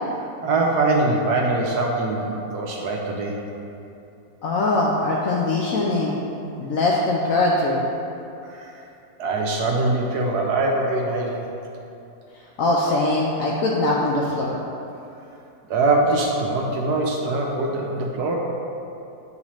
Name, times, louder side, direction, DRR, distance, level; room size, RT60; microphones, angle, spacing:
voice 1, 0.4-3.4 8.5-8.8 9.2-11.5 15.7-18.4, right 2 dB, 70° right, -1 dB, 1.1 m, -23 dB
voice 2, 4.4-6.1 6.6-7.8 12.6-14.6, left 2 dB, 70° left, -3 dB, 0.8 m, -21 dB
8.5 x 4.0 x 3.0 m, 2.8 s
omnidirectional pair, 1.9 m